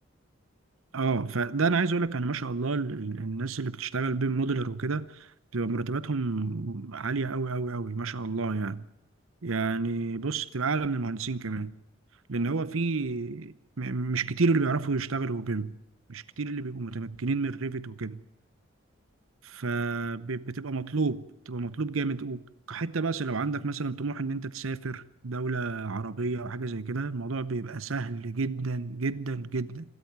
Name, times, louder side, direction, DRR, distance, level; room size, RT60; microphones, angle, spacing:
voice 1, 0.9-8.9 9.4-11.7 12.3-15.8 16.1-18.2 19.4-29.8, right 3 dB, 80° right, 0.8 m, -30 dB
26.5 x 13.5 x 9.4 m
head